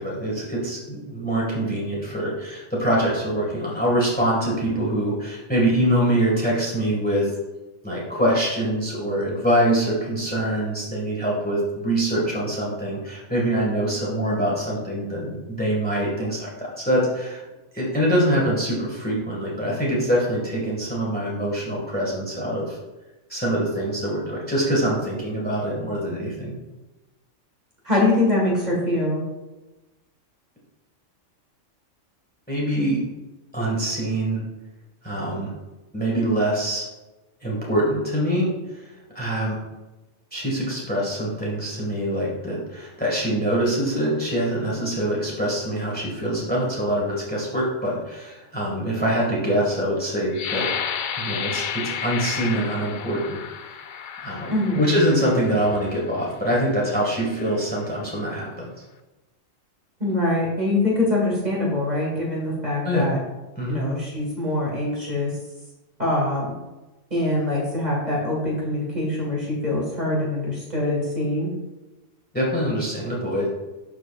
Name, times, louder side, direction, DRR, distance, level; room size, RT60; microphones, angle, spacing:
voice 1, 0.0-7.3 7.8-17.4 17.7-22.8 23.3-26.5 32.5-33.0 33.5-34.4 35.0-35.5 35.9-36.9 37.4-39.6 40.3-50.7 51.2-53.4 53.7-53.8 54.2-58.7 62.8-63.1 63.6-63.8 72.3-73.5, right 1 dB, 5° left, -4 dB, 1.9 m, -24 dB
voice 2, 27.8-29.2 54.5-54.8 60.0-63.2 63.7-65.3 66.0-66.5 67.1-71.5, left 2 dB, 35° right, -4 dB, 2.2 m, -23 dB
sound 1, 50.3-56.0 56.6-56.8 57.3-57.7, left 7 dB, 65° left, 0.4 m, -32 dB
12.0 x 4.7 x 2.5 m, 1.1 s
omnidirectional pair, 1.3 m